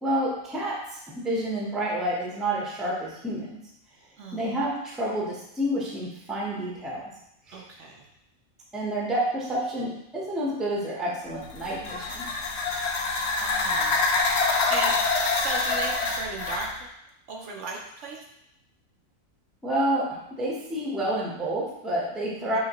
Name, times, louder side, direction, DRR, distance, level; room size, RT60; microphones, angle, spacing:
voice 1, 0.0-3.6 4.3-7.0 7.5-7.6 8.7-12.3 19.6-22.6, right 1 dB, ahead, -4 dB, 0.7 m, -29 dB
voice 2, 4.2-4.6 7.5-8.1 13.4-14.9 15.3-16.7 17.3-18.2 22.4-22.6, right 3 dB, 65° right, 0 dB, 0.9 m, -37 dB
sound 1, 11.4-16.7, left 3 dB, 60° left, 0.8 m, -26 dB
5.7 x 3.2 x 2.9 m, 0.82 s
omnidirectional pair, 1.4 m